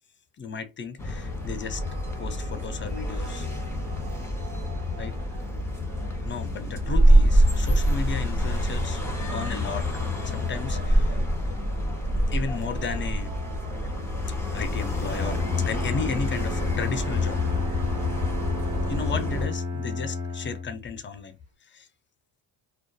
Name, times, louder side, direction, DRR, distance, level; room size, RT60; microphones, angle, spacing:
voice 1, 0.4-1.8 2.2-3.5 5.0-5.2 6.2-9.0 9.3-9.9 10.2-11.2 12.3-13.3 14.3-17.4 18.9-21.9, left 5 dB, 25° left, 0.4 m, -34 dB
sound 1, 1.0-19.5, equal, 5° left, 0.8 m, -26 dB
sound 2, 1.7-19.6, right 7 dB, 55° right, 0.8 m, -48 dB
Bowed string instrument, 15.1-21.0, left 3 dB, 35° right, 1.1 m, -32 dB
2.5 x 2.2 x 2.2 m
cardioid pair, 100°, 47 cm